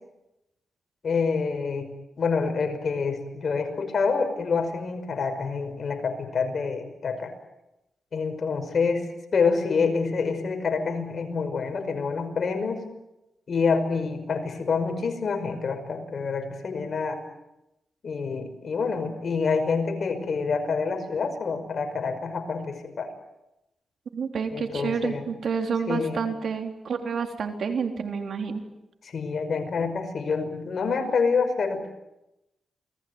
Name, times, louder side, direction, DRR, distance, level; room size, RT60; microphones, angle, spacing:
voice 1, 1.0-1.9 2.2-7.3 8.1-12.8 13.5-17.2 18.0-23.1 24.5-25.3 25.9-26.3 29.0-31.9, left 5 dB, 60° left, 7 dB, 5.5 m, -27 dB
voice 2, 24.1-28.6, right 5 dB, 75° right, 5 dB, 3.6 m, -29 dB
28.5 x 20.5 x 9.6 m, 0.94 s
cardioid pair, 75°, 0 cm